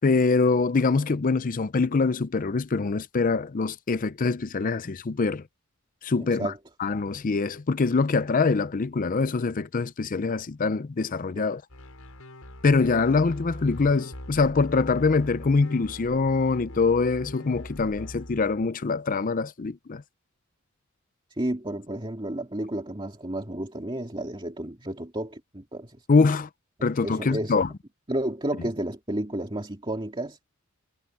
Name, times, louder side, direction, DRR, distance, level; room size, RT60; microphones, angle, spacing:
voice 1, 0.0-5.4 6.0-6.5 6.8-11.6 12.6-20.0 26.1-26.5 26.8-27.7, left 4 dB, 40° left, 0.5 m, -24 dB
voice 2, 6.2-6.6 11.3-11.5 21.3-26.1 26.8-27.5 28.1-30.4, right 1 dB, 25° right, 2.5 m, -32 dB
sound 1, 11.7-18.7, left 1 dB, 90° left, 5.5 m, -42 dB
head